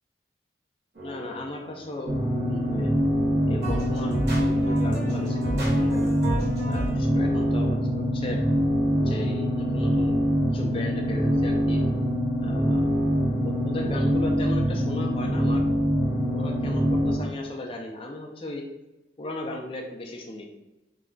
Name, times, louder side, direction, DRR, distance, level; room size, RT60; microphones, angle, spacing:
voice 1, 1.0-2.9 3.5-6.1 6.6-8.4 8.9-10.2 10.5-11.8 12.4-12.8 13.4-15.6 16.3-18.6 19.2-20.5, left 2 dB, 30° left, 1 dB, 0.4 m, -36 dB
sound 1, 1.0-3.2 3.6-6.9, right 1 dB, 70° right, 0.8 m, -34 dB
sound 2, 2.1-17.1, equal, 40° right, 0.7 m, -24 dB
2.3 x 2.1 x 3.7 m, 1.0 s
head